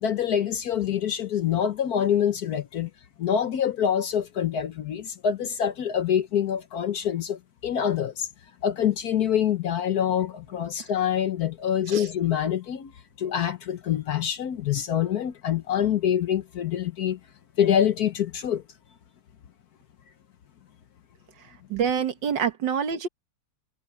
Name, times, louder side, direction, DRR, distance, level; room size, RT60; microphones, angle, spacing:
voice 1, 0.0-2.9 3.2-8.3 8.6-12.9 13.2-17.2 17.6-18.6, left 9 dB, 60° left, 1.2 m, -25 dB
voice 2, 21.4-23.1, right 7 dB, 70° right, 2.0 m, -27 dB
omnidirectional pair, 2.1 m